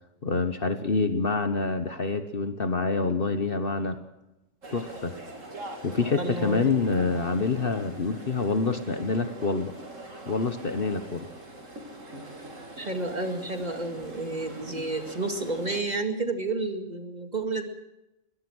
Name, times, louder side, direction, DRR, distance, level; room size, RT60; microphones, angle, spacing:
voice 1, 0.2-4.0 4.7-5.1 5.8-9.7 10.3-11.3, left 4 dB, 45° left, 9 dB, 1.3 m, -27 dB
sound 1, 4.6-15.8, right 1 dB, 65° right, 3.3 m, -42 dB
voice 2, 6.1-6.7 12.8-17.6, right 2 dB, 30° right, 6 dB, 2.2 m, -31 dB
21.5 x 20.5 x 6.3 m, 0.94 s
omnidirectional pair, 1.4 m